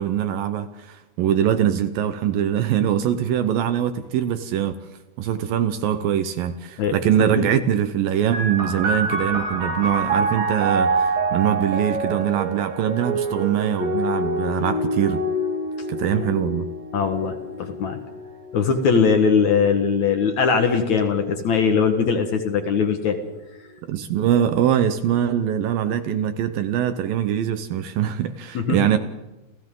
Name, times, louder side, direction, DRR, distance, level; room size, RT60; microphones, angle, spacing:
voice 1, 0.0-4.8 5.2-15.2 15.9-16.7 23.9-29.0, right 10 dB, 70° right, 10 dB, 2.4 m, -23 dB
sound 1, 8.3-21.6 22.4-23.2, right 2 dB, 90° right, 7.8 m, -27 dB
voice 2, 16.9-18.0 18.5-23.2 28.5-28.8, left 6 dB, 55° left, 5 dB, 2.3 m, -20 dB
29.5 x 29.0 x 3.8 m, 1.1 s
omnidirectional pair, 4.7 m